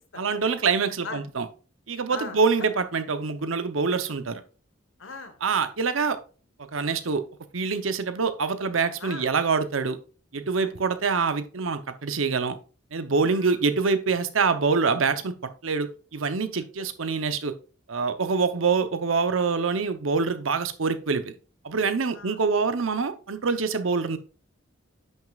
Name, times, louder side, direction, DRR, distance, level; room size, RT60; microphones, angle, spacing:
voice 1, 0.2-1.5 1.9-4.4 5.4-6.2 6.7-7.2 7.5-10.0 10.3-12.6 12.9-15.3 15.6-17.5 17.9-21.3 21.6-24.2, right 4 dB, 90° right, 10 dB, 0.8 m, -25 dB
voice 2, 2.1-2.4 5.0-5.4 9.0-9.3 10.6-10.7 13.3-13.5 22.1-22.4, left 4 dB, 85° left, 7 dB, 1.3 m, -39 dB
10.0 x 6.4 x 2.4 m, 0.37 s
head